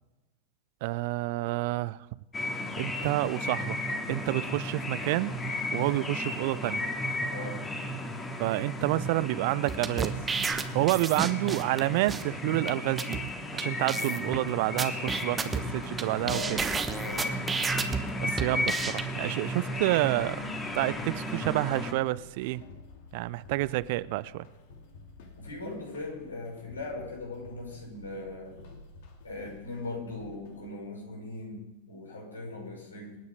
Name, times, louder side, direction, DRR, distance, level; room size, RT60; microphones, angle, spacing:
voice 1, 0.8-2.1 2.8-3.8 4.1-5.3 5.7-6.8 8.4-10.2 10.7-13.2 13.5-16.6 18.2-20.5 20.7-22.6 23.1-24.5, right 19 dB, 50° right, 0.4 m, -29 dB
sound 1, 2.3-21.9, left 1 dB, 15° left, 2.5 m, -34 dB
voice 2, 7.3-7.6 16.2-16.6 17.0-17.4 25.4-28.6 29.2-33.2, left 2 dB, 75° left, 5.7 m, -39 dB
sound 2, 9.7-11.8 12.1-12.2 12.7-12.8 13.0-13.2 13.6-13.7 13.9-14.4 14.8-16.0 16.3-18.0 18.4-19.0, right 5 dB, 15° right, 1.3 m, -31 dB
sound 3, 16.2-30.7, left 3 dB, 50° left, 2.7 m, -51 dB
26.5 x 9.6 x 5.2 m
figure-of-eight pair, 90°, 0 cm